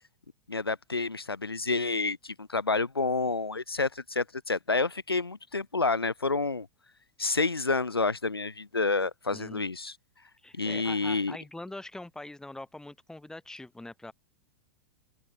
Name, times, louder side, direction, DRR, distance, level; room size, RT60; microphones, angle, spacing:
voice 1, 0.5-6.7 7.2-9.9 10.6-11.4, left 3 dB, 90° left, 1.2 m, -29 dB
voice 2, 9.3-9.6 10.4-14.1, left 2 dB, 5° left, 3.3 m, -43 dB
figure-of-eight pair, 100°, 12 cm